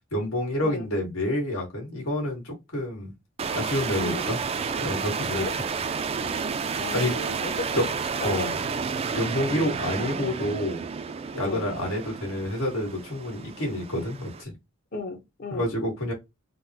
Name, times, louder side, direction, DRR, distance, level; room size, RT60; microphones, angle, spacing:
voice 1, 0.1-3.1 3.5-4.4 4.8-5.4 6.9-7.1 7.8-7.9 8.2-8.6 9.2-10.8 11.3-14.5 15.5-16.1, left 1 dB, 85° left, 1.8 m, -28 dB
sound 1, 3.4-14.4, right 5 dB, 30° right, 0.3 m, -31 dB
voice 2, 4.0-4.3 5.3-5.5 6.8-7.9 8.2-8.5 11.4-11.7 14.9-15.7, left 3 dB, 50° left, 0.9 m, -34 dB
3.8 x 2.1 x 2.8 m
head